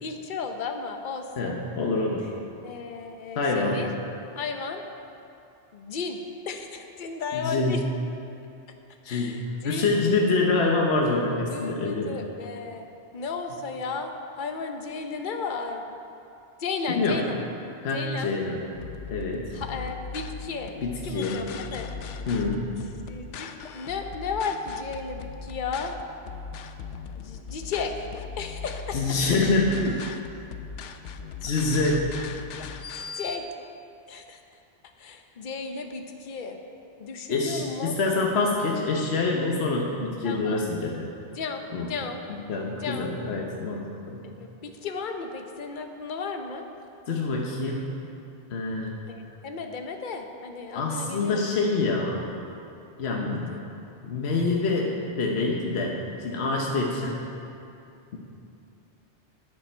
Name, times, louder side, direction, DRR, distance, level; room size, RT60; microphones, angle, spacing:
voice 1, 0.0-1.6 2.6-3.9 4.3-4.8 5.7-6.2 6.5-7.8 9.1-10.1 11.5-12.9 13.1-15.8 16.6-17.4 17.9-18.3 19.5-21.9 22.7-23.5 23.7-26.0 27.2-28.1 28.4-29.0 32.9-33.4 34.1-34.4 35.0-36.6 37.0-37.9 40.2-40.7 41.3-42.2 42.7-43.1 44.2-46.7 49.1-51.4 53.3-53.6, left 4 dB, 50° left, 5 dB, 0.9 m, -34 dB
voice 2, 1.4-2.3 3.3-3.8 7.3-7.8 9.0-12.1 16.9-17.3 17.8-18.6 19.1-19.5 20.8-21.4 22.3-22.7 28.9-30.0 31.4-32.1 37.3-41.1 41.7-41.9 42.3-44.2 47.1-47.9 48.5-48.9 50.7-52.3 53.0-53.5 54.0-57.3, left 3 dB, 65° left, -1 dB, 1.2 m, -26 dB
sound 1, 18.7-33.4, left 5 dB, 85° left, 0.9 m, -39 dB
12.0 x 9.9 x 4.4 m, 2.7 s
omnidirectional pair, 1.2 m